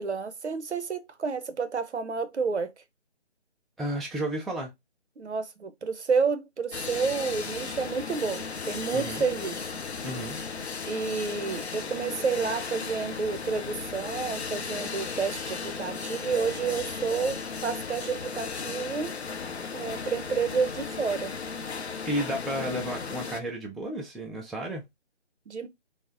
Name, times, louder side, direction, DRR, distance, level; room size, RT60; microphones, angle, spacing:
voice 1, 0.0-2.7 5.2-9.7 10.8-19.1 19.7-21.4 25.5-25.7, right 5 dB, 70° right, 0.6 m, -30 dB
voice 2, 3.8-4.7 8.9-9.2 10.0-10.4 22.0-24.8, right 1 dB, ahead, 0.3 m, -32 dB
sound 1, 6.7-23.4, left 5 dB, 65° left, 0.6 m, -36 dB
3.3 x 2.0 x 2.5 m
figure-of-eight pair, 155°, 35 cm